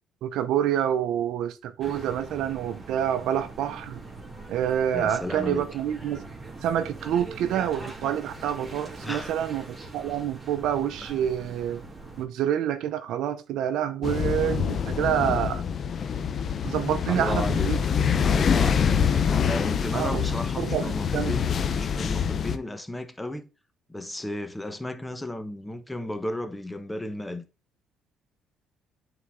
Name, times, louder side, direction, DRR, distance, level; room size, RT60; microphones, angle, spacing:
voice 1, 0.2-4.0 4.5-6.2 6.6-11.8 12.2-15.6 16.6-17.8 19.9-20.3 20.6-21.4, right 10 dB, 75° right, 0.6 m, -27 dB
sound 1, 1.8-12.3, right 3 dB, 25° right, 2.2 m, -42 dB
voice 2, 4.9-5.7 9.0-9.3 11.0-11.1 17.1-19.0 19.5-23.5 23.9-27.4, left 1 dB, 10° left, 1.0 m, -34 dB
sound 2, 14.0-22.6, left 7 dB, 50° left, 0.6 m, -25 dB
8.4 x 4.0 x 3.6 m
cardioid pair, 85°, 0 cm